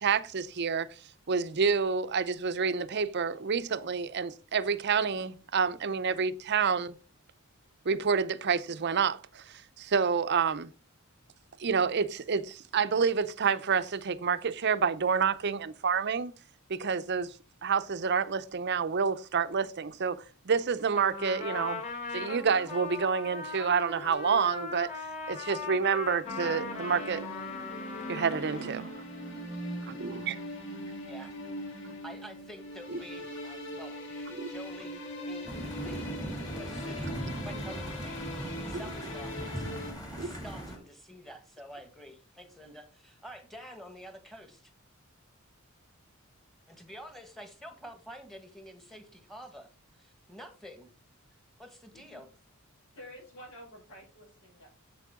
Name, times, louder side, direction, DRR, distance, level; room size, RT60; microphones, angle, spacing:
voice 1, 0.0-0.9 1.3-6.9 7.8-10.7 11.6-16.3 16.7-17.3 17.6-21.8 22.1-24.9 25.3-27.3 28.1-28.9 29.9-30.4 34.3-34.5 40.2-40.3, right 6 dB, 50° right, 0.6 m, -28 dB
Trumpet, 20.9-28.8, left 5 dB, 35° left, 3.7 m, -39 dB
sound 1, 26.2-39.9, equal, 55° left, 2.9 m, -41 dB
voice 2, 32.0-35.5 35.8-44.7 46.7-49.7 50.0-50.9 51.6-52.3, equal, ahead, 1.4 m, -49 dB
sound 2, 35.4-40.8, right 1 dB, 20° left, 2.5 m, -38 dB
voice 3, 52.9-54.7, equal, 80° left, 5.5 m, -50 dB
8.3 x 7.6 x 3.6 m
head